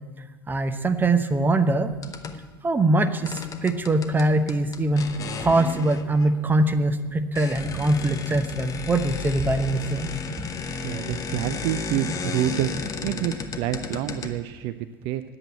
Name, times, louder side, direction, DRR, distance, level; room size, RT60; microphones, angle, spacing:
voice 1, 0.5-1.9 2.6-5.0 5.4-10.1, right 2 dB, 15° right, 8 dB, 0.8 m, -22 dB
sound 1, 1.9-2.5 3.3-6.4 7.0-7.1 7.4-14.7, left 5 dB, 30° left, 0.9 m, -33 dB
voice 2, 10.8-12.7 13.0-15.2, right 13 dB, 50° right, 11 dB, 0.4 m, -28 dB
9.8 x 8.0 x 8.6 m, 1.3 s
figure-of-eight pair, 75°, 12 cm